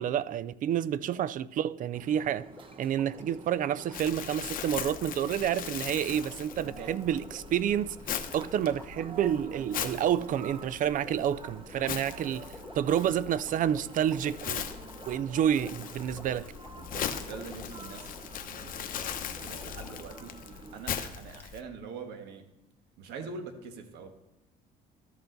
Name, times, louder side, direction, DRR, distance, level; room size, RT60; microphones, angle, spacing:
voice 1, 0.0-2.4 2.8-8.0 8.3-12.5 12.7-14.7 15.1-16.4, right 10 dB, 50° right, 0.4 m, -29 dB
sound 1, 1.9-20.8, right 4 dB, 30° right, 0.9 m, -49 dB
Sink (filling or washing), 2.4-20.2 21.4-21.5, left 2 dB, 10° left, 1.4 m, -51 dB
Crumpling crinkling, 3.9-21.6, left 9 dB, 55° left, 0.9 m, -40 dB
voice 2, 6.5-6.9 16.1-16.4 16.7-20.3 20.7-22.4 23.0-24.1, right 5 dB, 85° right, 1.4 m, -44 dB
13.5 x 6.9 x 3.9 m
cardioid pair, 110°, 17 cm